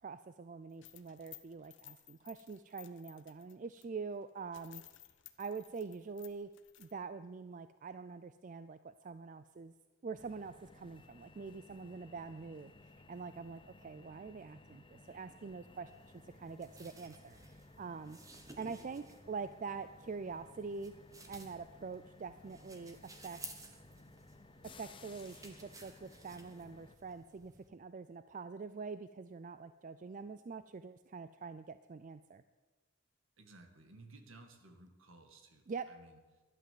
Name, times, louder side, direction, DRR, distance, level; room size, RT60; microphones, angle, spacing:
voice 1, 0.0-4.8 5.4-6.5 6.8-9.7 10.0-12.7 13.1-15.9 16.2-17.4 17.8-18.2 18.6-20.9 21.3-23.4 24.6-32.4 35.7-35.9, right 4 dB, 35° right, 12 dB, 0.4 m, -45 dB
sound 1, 0.7-3.8 4.2-4.3 4.5-6.9, left 15 dB, 55° left, 0.9 m, -57 dB
sound 2, 10.1-27.0, left 2 dB, 25° left, 0.7 m, -59 dB
sound 3, 15.9-27.7, right 3 dB, 15° right, 1.3 m, -56 dB
voice 2, 33.4-36.4, right 2 dB, 65° right, 5 dB, 2.0 m, -58 dB
12.0 x 11.5 x 7.6 m, 1.3 s
head